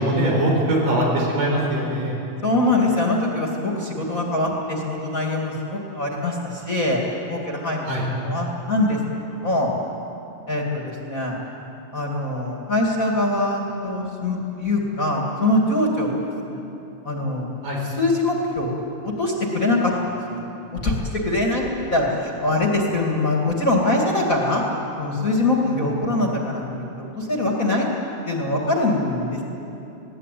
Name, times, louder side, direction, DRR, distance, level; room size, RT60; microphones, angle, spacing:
voice 1, 0.0-2.2 7.8-8.0 17.6-17.8 25.6-25.9, right 1 dB, 80° right, -2 dB, 6.2 m, -22 dB
voice 2, 2.4-7.9 8.2-9.0 9.3-9.7 10.5-11.4 11.9-16.2 16.4-16.6 17.0-17.5 18.0-18.8 19.0-20.4 20.7-24.6 25.0-27.9 28.3-29.4, left 2 dB, 30° left, -1 dB, 2.2 m, -23 dB
21.0 x 17.5 x 9.2 m, 2.9 s
omnidirectional pair, 3.6 m